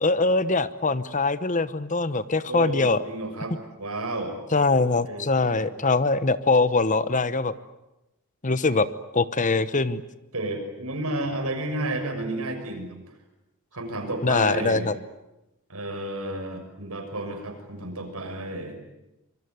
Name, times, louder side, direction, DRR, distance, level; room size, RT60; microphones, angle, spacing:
voice 1, 0.0-3.0 4.5-7.5 8.4-8.9 9.1-10.0 14.2-14.9, left 3 dB, 35° left, 14 dB, 1.0 m, -22 dB
voice 2, 2.4-4.4 5.1-5.7 10.3-13.0 13.7-14.9 15.7-18.8, right 2 dB, 85° right, 5 dB, 6.4 m, -32 dB
25.5 x 23.5 x 9.5 m, 0.94 s
head